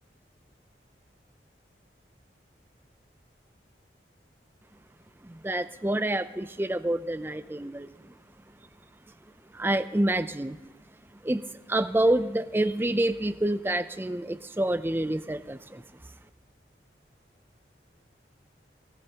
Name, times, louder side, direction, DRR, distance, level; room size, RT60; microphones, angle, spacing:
voice 1, 5.2-7.9 9.5-10.6 11.2-15.8, right 1 dB, 10° right, 13 dB, 0.4 m, -27 dB
19.5 x 18.0 x 2.9 m, 1.2 s
head